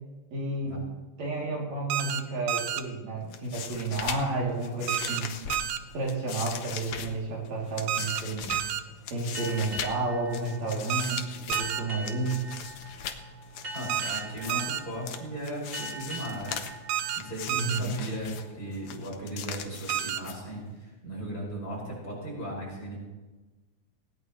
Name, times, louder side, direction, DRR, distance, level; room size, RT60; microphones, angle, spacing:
voice 1, 0.3-0.8 1.2-5.3 5.9-8.6 9.1-12.4 17.6-18.0, right 2 dB, 65° right, -3 dB, 4.2 m, -31 dB
sound 1, 1.9-2.2 2.5-2.8 4.9-5.2 5.5-5.8 7.9-8.2 8.5-8.8 10.9-11.2 11.5-11.8 13.9-14.2 14.5-14.8 16.9-17.2 17.5-17.8 19.9-20.2, right 11 dB, 80° right, 2.2 m, -30 dB
sound 2, 3.2-20.8, left 7 dB, 65° left, 1.6 m, -41 dB
sound 3, 9.3-18.5, right 1 dB, 30° right, 2.4 m, -43 dB
voice 2, 13.7-16.5 17.2-23.0, right 1 dB, 30° left, -5 dB, 6.2 m, -37 dB
19.5 x 17.5 x 3.2 m, 1.2 s
omnidirectional pair, 3.4 m